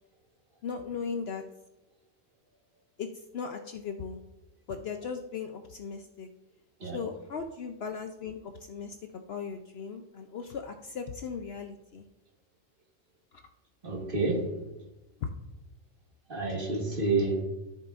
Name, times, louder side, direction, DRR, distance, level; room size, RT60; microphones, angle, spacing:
voice 1, 0.6-1.4 3.0-3.1 3.3-4.2 4.7-6.3 6.9-12.0 15.2-15.3, left 6 dB, 65° left, 6 dB, 0.7 m, -37 dB
voice 2, 13.8-14.6 16.3-17.4, right 3 dB, 45° right, 1 dB, 1.5 m, -29 dB
14.0 x 6.7 x 2.4 m, 1.0 s
omnidirectional pair, 1.4 m